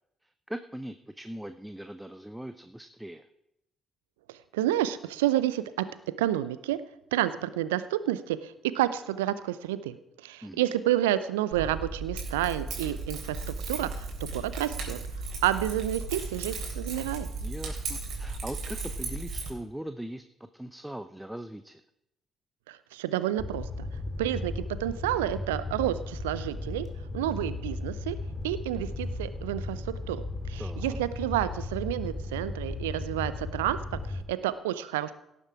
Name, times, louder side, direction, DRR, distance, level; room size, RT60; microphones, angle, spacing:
voice 1, 0.2-3.3 10.4-10.6 17.4-21.8 30.6-31.0, right 1 dB, 5° right, 10 dB, 0.7 m, -40 dB
voice 2, 4.3-5.9 6.2-6.8 7.1-15.0 15.4-17.3 22.7-23.9 24.2-26.9 27.1-28.2 28.4-35.1, right 13 dB, 80° right, 15 dB, 0.5 m, -30 dB
Keys jangling, 11.5-19.5, right 3 dB, 55° right, 3.5 m, -36 dB
Fire, 23.4-34.2, left 2 dB, 30° left, 2.0 m, -36 dB
17.5 x 7.3 x 4.8 m, 0.85 s
figure-of-eight pair, 45°, 0 cm